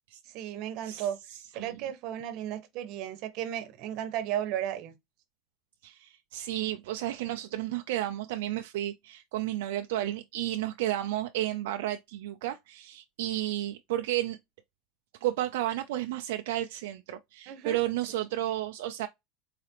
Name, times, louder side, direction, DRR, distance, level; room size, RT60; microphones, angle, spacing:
voice 1, 0.3-1.2 1.5-4.9 17.5-17.8, right 11 dB, 60° right, 0.9 m, -34 dB
voice 2, 5.8-14.4 15.2-19.1, right 14 dB, 85° right, 0.3 m, -32 dB
4.0 x 2.5 x 2.8 m
supercardioid pair, 130°, 0 cm